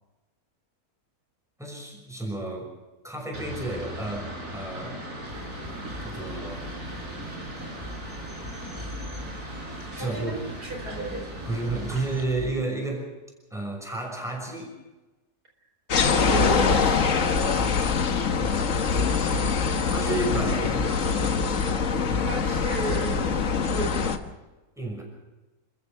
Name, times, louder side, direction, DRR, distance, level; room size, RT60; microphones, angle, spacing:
voice 1, 1.6-2.7 3.0-5.0 6.0-6.7 10.0-10.5 11.4-13.1 13.5-14.7 17.4-18.1 18.4-21.0 22.1-22.3 24.8-25.0, right 2 dB, ahead, 1 dB, 6.0 m, -32 dB
sound 1, 3.3-12.2, right 1 dB, 55° right, 5.7 m, -38 dB
sound 2, 5.3-12.6, left 1 dB, 15° right, 4.0 m, -42 dB
voice 2, 10.0-11.3 11.9-12.0 16.3-17.1 22.2-23.2 23.7-24.0, right 3 dB, 85° right, 3 dB, 5.2 m, -33 dB
sound 3, 15.9-24.2, left 5 dB, 55° left, 1.6 m, -24 dB
29.0 x 14.5 x 6.7 m, 1.1 s
omnidirectional pair, 1.7 m